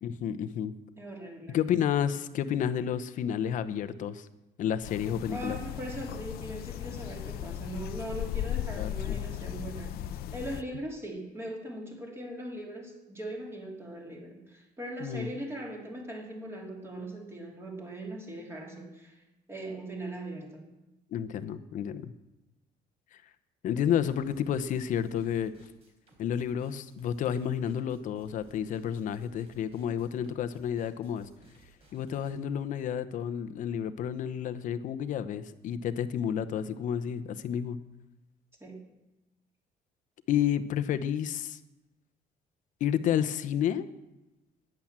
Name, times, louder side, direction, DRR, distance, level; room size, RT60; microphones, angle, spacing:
voice 1, 0.0-0.7 1.5-4.3 4.6-5.6 8.8-9.2 15.0-15.3 21.1-22.1 23.6-25.5 26.2-31.3 31.9-37.8 40.3-41.6 42.8-43.9, left 9 dB, 55° left, 12 dB, 0.9 m, -30 dB
voice 2, 1.0-1.6 5.3-19.2 19.5-20.7 38.6-38.8, right 1 dB, 15° right, 0 dB, 3.0 m, -40 dB
sound 1, 4.8-10.6, left 11 dB, 80° left, 0.7 m, -36 dB
sound 2, 24.0-32.3, right 4 dB, 40° right, 4.0 m, -60 dB
14.5 x 10.5 x 7.5 m, 0.99 s
cardioid pair, 160°, 16 cm